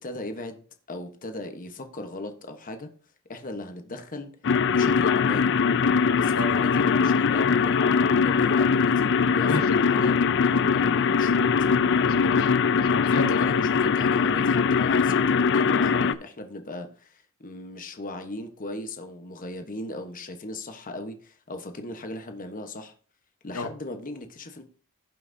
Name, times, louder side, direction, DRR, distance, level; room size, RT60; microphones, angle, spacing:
voice 1, 0.0-2.9 3.3-4.3 4.7-5.5 6.1-7.8 8.2-10.2 10.4-11.7 13.1-22.9 23.4-24.6, left 2 dB, 40° left, 1.1 m, -38 dB
sound 1, 4.4-16.1, left 5 dB, 60° left, 0.5 m, -21 dB
voice 2, 12.0-13.5 23.5-23.7, left 2 dB, 80° left, 1.3 m, -31 dB
16.5 x 5.8 x 2.7 m
head